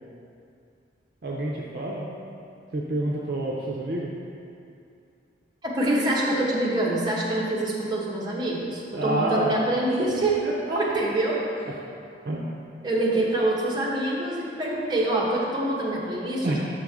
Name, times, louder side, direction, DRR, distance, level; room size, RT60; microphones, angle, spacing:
voice 1, 1.2-2.1 2.7-4.1 8.9-9.6 10.4-10.8 12.2-12.4 16.4-16.6, right 1 dB, 55° right, -3 dB, 0.5 m, -28 dB
voice 2, 5.6-10.4 10.8-11.8 12.8-16.6, right 1 dB, 20° right, -5 dB, 0.9 m, -25 dB
6.2 x 5.2 x 3.5 m, 2.5 s
head